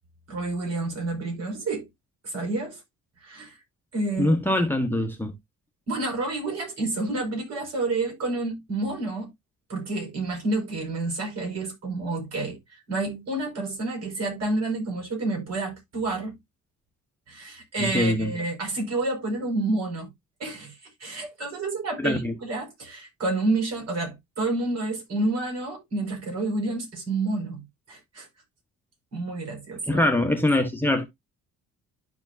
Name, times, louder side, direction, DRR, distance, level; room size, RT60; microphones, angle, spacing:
voice 1, 0.3-1.9 2.2-2.8 3.2-3.6 3.9-4.6 5.9-9.3 9.7-16.4 17.3-20.1 20.4-28.3 29.1-30.0, right 2 dB, 55° right, 5.5 m, -29 dB
voice 2, 4.2-5.3 17.8-18.3 22.0-22.3 29.9-31.1, left 1 dB, 5° left, 1.3 m, -23 dB
12.0 x 4.3 x 2.7 m
cardioid pair, 90°, 30 cm